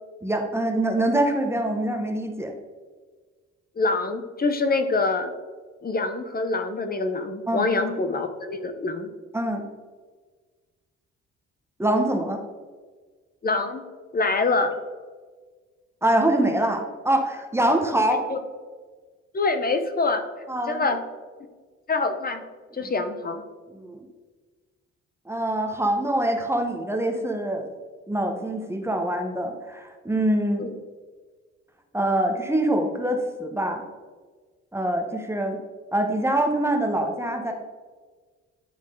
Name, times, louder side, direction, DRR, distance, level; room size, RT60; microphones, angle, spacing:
voice 1, 0.2-2.5 7.5-7.7 9.3-9.6 11.8-12.4 16.0-18.2 20.5-20.9 22.8-22.9 23.7-24.1 25.3-27.7 28.1-30.7 31.9-33.8 34.7-35.6 35.9-37.5, right 1 dB, 10° right, 3 dB, 1.0 m, -24 dB
voice 2, 3.8-5.3 5.8-9.1 13.4-13.8 14.1-14.8 18.3-18.4 19.3-20.2 20.7-21.0 21.9-22.4 22.7-23.4 30.6-30.7, left 3 dB, 30° left, 8 dB, 0.7 m, -25 dB
9.8 x 3.6 x 3.7 m, 1.4 s
cardioid pair, 90°, 30 cm